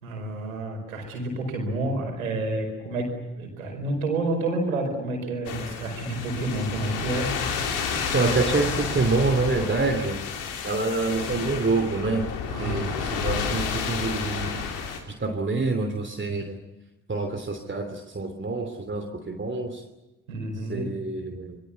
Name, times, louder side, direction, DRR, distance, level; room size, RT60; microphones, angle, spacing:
voice 1, 0.0-7.4 12.5-12.9 20.3-20.9, right 2 dB, 80° right, 2 dB, 5.1 m, -29 dB
sound 1, 5.5-15.0, left 6 dB, 70° left, 3.3 m, -30 dB
voice 2, 8.1-10.2 10.6-12.3 12.6-14.9 15.2-16.6 17.1-19.9 20.7-21.6, right 3 dB, 30° right, 5 dB, 3.0 m, -27 dB
27.0 x 22.0 x 8.4 m, 1.0 s
figure-of-eight pair, 40°, 41 cm